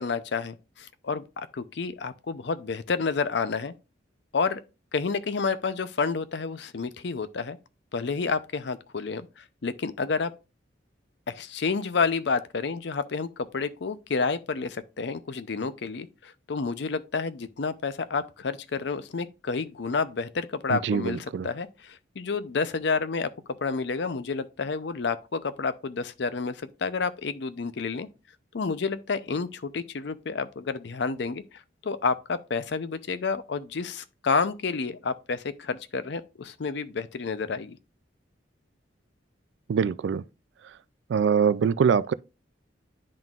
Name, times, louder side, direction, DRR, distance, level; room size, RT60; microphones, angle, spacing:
voice 1, 0.0-3.7 4.3-4.6 4.9-7.6 7.9-10.3 11.3-23.3 23.6-28.1 28.5-37.8, left 4 dB, 65° left, 0.5 m, -30 dB
voice 2, 20.7-21.5 39.7-40.2 41.1-42.1, right 6 dB, 70° right, 0.3 m, -23 dB
10.5 x 3.8 x 2.4 m
head